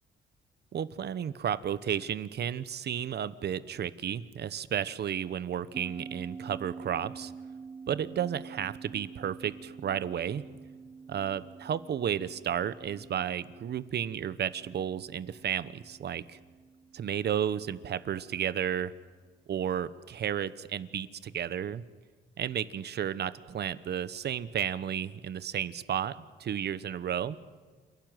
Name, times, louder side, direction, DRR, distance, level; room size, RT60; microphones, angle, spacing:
voice 1, 0.7-7.3 7.9-10.4 11.1-16.4 16.9-18.9 19.5-21.8 22.4-27.4, right 9 dB, 55° right, 15 dB, 1.0 m, -32 dB
sound 1, 5.7-18.5, right 5 dB, 20° right, 1.5 m, -48 dB
28.5 x 12.0 x 9.2 m, 1.5 s
cardioid pair, 90°, 20 cm